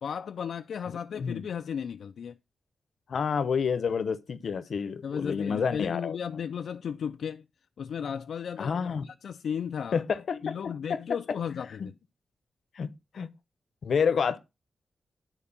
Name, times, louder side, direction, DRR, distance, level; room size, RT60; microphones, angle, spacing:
voice 1, 0.0-2.4 5.0-7.4 7.8-10.0 10.4-11.9, left 7 dB, 75° left, 0.5 m, -35 dB
voice 2, 0.9-1.4 3.1-6.2 8.6-9.1 9.9-10.5 10.9-11.0 11.8-11.9 12.8-12.9 13.1-13.3 13.8-14.4, left 6 dB, 60° left, 0.9 m, -29 dB
11.0 x 4.6 x 7.0 m
wide cardioid pair, 175°, 0 cm